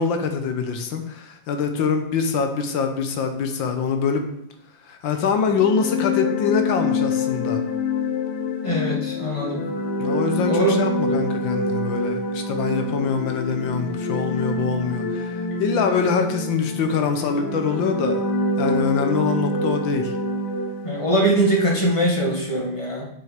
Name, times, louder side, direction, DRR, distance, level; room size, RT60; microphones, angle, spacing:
voice 1, 0.0-4.3 4.9-7.6 10.0-18.2 18.6-20.1, left 5 dB, 85° left, 6 dB, 1.7 m, -24 dB
sound 1, 5.5-21.2, left 2 dB, 70° left, 1.3 m, -26 dB
voice 2, 8.6-9.7 10.5-10.8 20.8-23.1, right 1 dB, 15° left, -2 dB, 1.6 m, -22 dB
7.5 x 6.0 x 5.1 m, 0.75 s
omnidirectional pair, 2.0 m